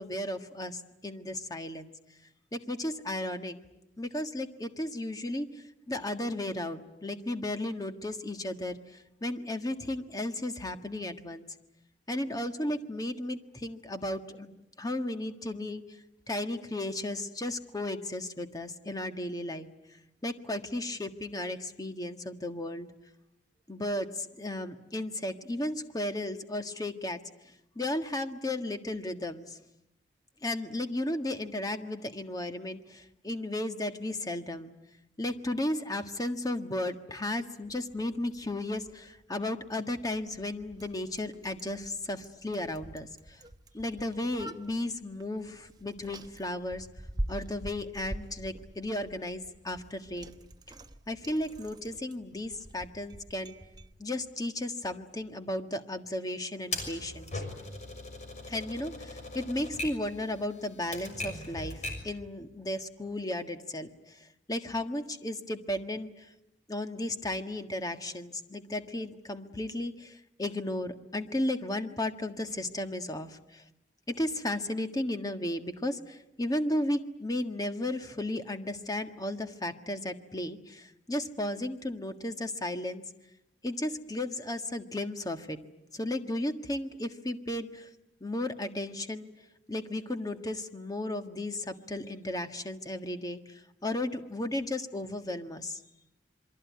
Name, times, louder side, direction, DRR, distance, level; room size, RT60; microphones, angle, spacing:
voice 1, 0.0-1.9 2.5-3.6 4.0-11.5 12.1-15.8 16.3-19.7 20.2-22.9 23.7-27.2 27.7-29.6 30.4-34.7 35.2-43.4 43.7-46.9 47.3-50.4 51.1-53.5 54.0-57.3 58.5-66.3 66.7-73.6 74.1-83.0 83.6-85.6 85.9-87.9 88.2-89.3 89.7-95.8, left 1 dB, 20° left, 7 dB, 1.6 m, -34 dB
Bicycle, 37.6-53.9, right 1 dB, 25° right, 1.1 m, -45 dB
Typewriter, 56.7-62.1, left 2 dB, 40° left, 6.2 m, -39 dB
27.5 x 23.0 x 9.5 m, 0.87 s
head